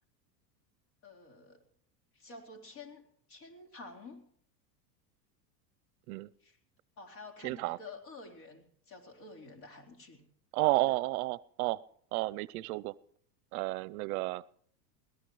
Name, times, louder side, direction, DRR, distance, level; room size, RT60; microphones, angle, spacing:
voice 1, 1.0-1.6 2.1-4.3 6.4-6.6 7.0-10.2 10.9-11.0, left 3 dB, 50° left, 4 dB, 4.0 m, -50 dB
voice 2, 7.4-7.8 10.5-11.8 12.1-12.9 13.5-14.4, right 20 dB, 60° right, 21 dB, 0.6 m, -31 dB
22.0 x 17.5 x 3.1 m, 0.63 s
supercardioid pair, 130°, 49 cm